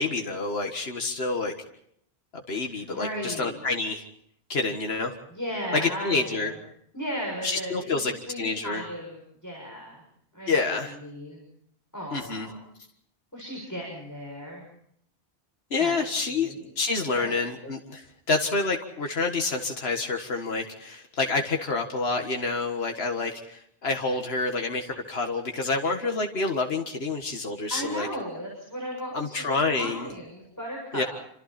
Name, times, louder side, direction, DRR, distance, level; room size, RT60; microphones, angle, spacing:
voice 1, 0.0-1.5 2.5-4.0 4.5-5.2 5.7-6.5 7.4-8.1 8.4-8.8 10.5-10.9 12.1-12.5 15.7-28.1 29.1-30.1 30.9-31.0, left 3 dB, 80° left, 3 dB, 2.0 m, -28 dB
voice 2, 2.7-3.6 5.3-6.6 6.9-10.0 10.3-11.4 11.9-12.6 13.3-14.6 15.8-15.9 16.3-16.7 17.1-17.5 27.7-31.1, equal, 15° left, -1 dB, 6.7 m, -36 dB
28.0 x 26.5 x 4.3 m, 0.69 s
omnidirectional pair, 1.0 m